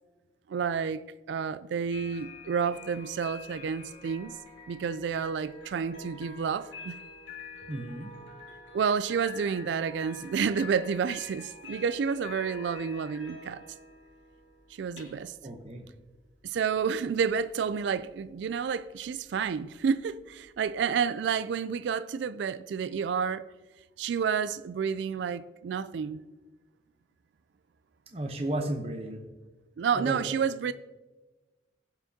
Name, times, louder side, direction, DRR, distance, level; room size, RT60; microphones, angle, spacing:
voice 1, 0.5-1.0 1.3-4.4 4.7-7.0 8.7-13.6 14.7-15.3 16.4-23.5 24.0-26.2 29.8-30.7, right 6 dB, 75° right, 0.3 m, -30 dB
sound 1, 1.9-20.9, left 3 dB, 75° left, 2.5 m, -47 dB
voice 2, 7.7-8.1 15.4-15.8 28.1-29.2 30.0-30.2, right 1 dB, 35° right, 0.8 m, -33 dB
16.0 x 5.9 x 2.8 m
head